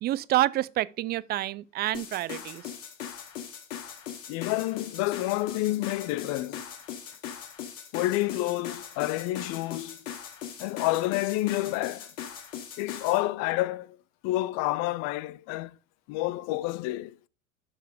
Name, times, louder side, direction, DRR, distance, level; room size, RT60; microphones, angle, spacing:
voice 1, 0.0-2.7, right 15 dB, 25° right, 0.4 m, -28 dB
sound 1, 1.9-13.2, left 9 dB, 75° left, 2.5 m, -40 dB
voice 2, 4.3-6.6 7.9-10.0 10.6-12.1 12.8-14.0 14.2-15.8 16.1-17.2, left 17 dB, 45° left, 0.5 m, -29 dB
12.0 x 4.7 x 4.9 m
hypercardioid pair, 95°, 39 cm